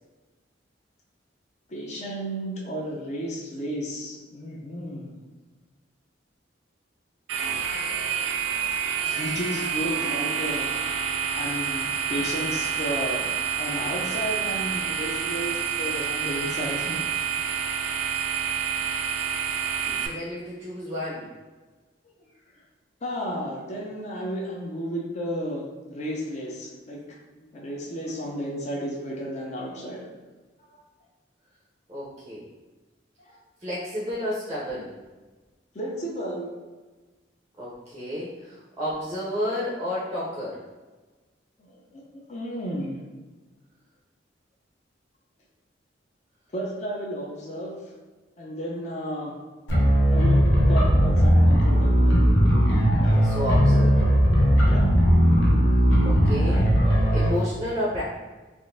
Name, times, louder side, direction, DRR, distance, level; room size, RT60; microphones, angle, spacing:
voice 1, 1.7-5.2 8.9-10.7 11.3-11.8 12.1-13.3 13.6-17.0 23.0-27.0 27.5-30.1 30.7-30.8 33.2-33.4 35.7-36.5 41.6-43.0 46.5-47.8 48.4-49.3 50.1-50.4 50.7-52.1 54.7-54.9, equal, 40° left, -3 dB, 0.5 m, -33 dB
sound 1, 7.3-20.1, right 7 dB, 90° right, 0.4 m, -28 dB
voice 2, 19.9-21.3 31.9-32.4 33.6-34.9 37.6-40.6 53.0-54.1 56.0-56.6 57.1-58.0, left 1 dB, 20° right, -6 dB, 0.5 m, -31 dB
sound 2, 49.7-57.3, equal, 80° left, 0.7 m, -18 dB
3.5 x 2.4 x 2.5 m, 1.3 s
head